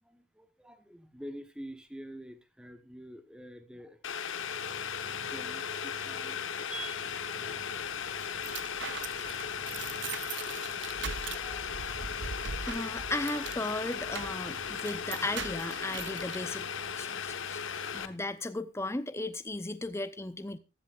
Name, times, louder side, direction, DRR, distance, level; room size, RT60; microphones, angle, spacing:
voice 1, 0.0-4.0 5.2-9.8, right 1 dB, 5° right, 9 dB, 1.1 m, -48 dB
Boiling, 4.0-18.1, left 7 dB, 75° left, 1.1 m, -37 dB
sound 1, 4.4-18.2, right 1 dB, 80° right, 2.3 m, -54 dB
sound 2, 7.8-16.4, right 6 dB, 60° right, 0.7 m, -42 dB
voice 2, 11.3-12.1 12.7-16.7 17.0-17.6 17.9-20.6, left 2 dB, 15° left, 12 dB, 0.7 m, -36 dB
14.5 x 14.5 x 2.5 m, 0.27 s
head